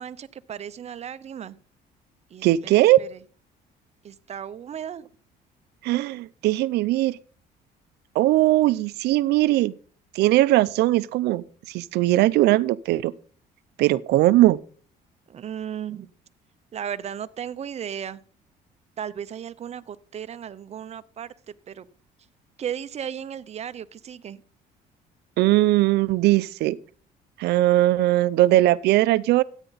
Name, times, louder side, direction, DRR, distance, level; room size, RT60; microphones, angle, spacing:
voice 1, 0.0-1.6 2.3-3.2 4.0-5.1 15.3-16.1 16.7-18.2 19.0-21.3 21.7-21.9 22.6-24.4, right 9 dB, 40° right, 0.7 m, -35 dB
voice 2, 2.4-3.0 5.8-7.2 8.2-9.7 10.2-13.1 13.8-14.6 25.4-26.8 27.4-29.4, right 16 dB, 80° right, 0.6 m, -19 dB
13.5 x 9.0 x 4.1 m
cardioid pair, 110°, 17 cm